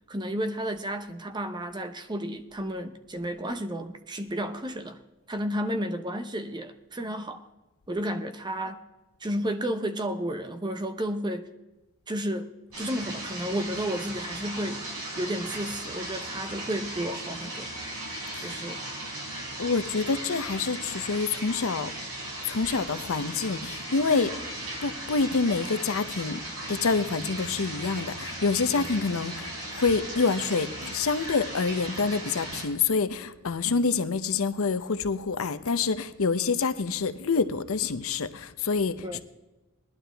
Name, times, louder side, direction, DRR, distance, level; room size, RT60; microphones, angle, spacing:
voice 1, 0.1-5.0 5.3-7.4 7.9-8.8 9.2-11.5 12.1-12.5 12.8-14.8 15.2-17.7 18.4-18.8 28.6-28.9 39.0-39.2, equal, 20° right, 0.6 m, -32 dB
sound 1, 12.7-32.7, right 1 dB, 80° right, 5.0 m, -37 dB
voice 2, 19.6-21.9 22.5-24.4 24.8-26.4 26.7-39.2, left 4 dB, 65° left, 0.6 m, -27 dB
19.0 x 11.5 x 3.4 m
head